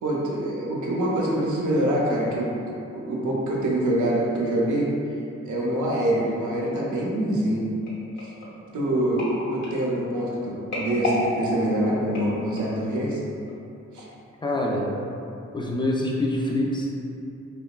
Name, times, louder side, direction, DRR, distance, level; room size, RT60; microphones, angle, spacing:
voice 1, 0.0-2.5 2.9-4.9 5.5-7.7 8.2-8.3 8.7-13.2 13.9-14.1, right 1 dB, 85° right, -4 dB, 0.6 m, -25 dB
sound 1, 7.9-12.9 13.5-13.7 14.0-14.1, left 1 dB, 80° left, 0.9 m, -33 dB
voice 2, 14.4-14.9 15.5-16.9, left 1 dB, 15° left, -2 dB, 0.3 m, -25 dB
2.8 x 2.2 x 2.3 m, 2.6 s
cardioid pair, 75°, 29 cm